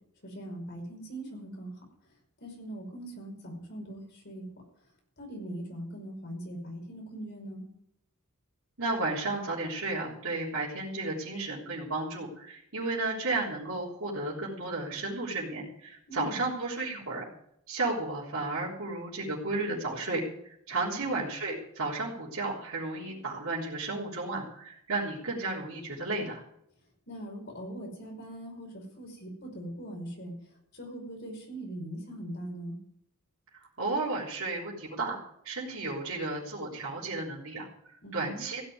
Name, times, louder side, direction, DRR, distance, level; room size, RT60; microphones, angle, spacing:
voice 1, 0.2-1.7 2.4-4.5 5.2-7.7 16.1-16.3 20.8-21.2 27.1-30.3 30.7-32.8 38.0-38.4, right 1 dB, 50° left, 1 dB, 5.3 m, -41 dB
voice 2, 8.8-17.3 17.7-26.4 33.8-38.6, right 2 dB, 65° right, -8 dB, 3.5 m, -33 dB
16.0 x 7.1 x 9.5 m, 0.74 s
head